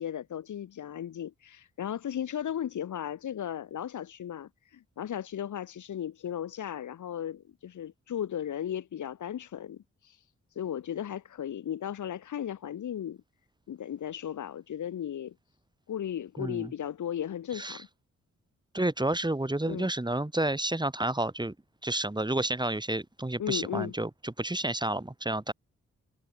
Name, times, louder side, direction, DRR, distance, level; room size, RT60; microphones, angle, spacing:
voice 1, 0.0-10.2 10.5-13.2 13.7-15.3 15.9-17.9 19.6-19.9 23.4-23.9, left 10 dB, 80° left, 2.7 m, -36 dB
voice 2, 16.4-16.7 17.5-17.8 18.7-21.5 21.8-25.5, right 1 dB, 15° right, 3.0 m, -30 dB
cardioid pair, 50°, 30 cm